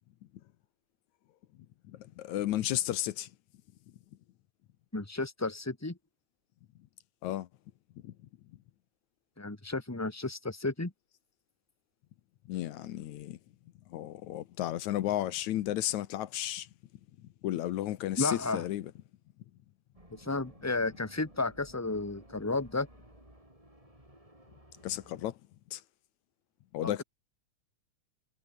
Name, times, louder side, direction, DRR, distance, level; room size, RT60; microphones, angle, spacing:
voice 1, 1.9-3.3 7.2-7.5 8.0-8.1 12.5-13.4 13.9-16.7 17.4-18.9 24.8-25.3 25.7-25.8 26.7-27.0, left 13 dB, 70° left, 2.2 m, -33 dB
voice 2, 4.9-6.0 9.4-10.9 18.2-18.6 20.2-22.9 26.8-27.0, left 3 dB, 5° left, 1.3 m, -33 dB
sound 1, 19.9-25.3, right 1 dB, 10° right, 7.5 m, -57 dB
omnidirectional pair, 3.7 m